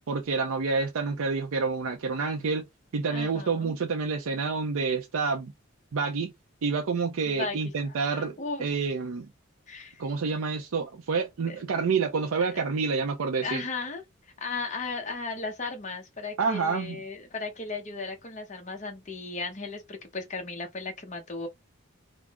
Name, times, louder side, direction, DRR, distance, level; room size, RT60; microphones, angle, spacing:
voice 1, 0.1-2.6 2.9-5.5 5.9-6.3 6.6-8.3 8.6-9.3 10.0-13.6 16.4-17.0, right 4 dB, 75° right, 0.5 m, -28 dB
voice 2, 3.1-3.7 7.3-8.7 9.7-10.0 11.1-11.2 11.5-11.6 12.5-12.6 13.4-14.0 14.4-21.5, left 3 dB, 35° left, 0.7 m, -36 dB
3.6 x 2.0 x 3.4 m
head